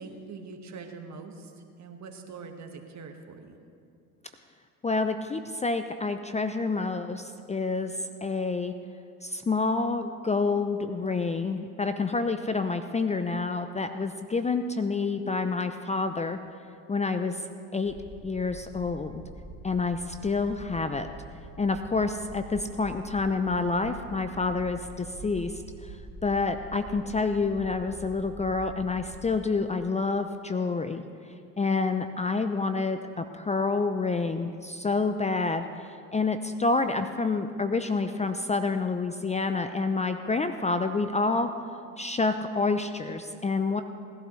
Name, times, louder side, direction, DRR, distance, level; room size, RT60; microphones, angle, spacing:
voice 1, 0.0-1.5 1.8-3.6, right 4 dB, 45° right, 4 dB, 1.7 m, -43 dB
voice 2, 4.8-7.9 8.2-8.8 9.2-16.4 16.9-17.4 17.7-18.0 18.2-19.2 19.6-21.1 21.6-26.0 26.2-31.0 31.6-41.5 42.0-43.8, left 3 dB, 15° left, 8 dB, 0.6 m, -28 dB
sound 1, 17.9-29.3, right 3 dB, 65° right, 1.3 m, -45 dB
19.5 x 11.5 x 3.2 m, 2.4 s
hypercardioid pair, 70°, 39 cm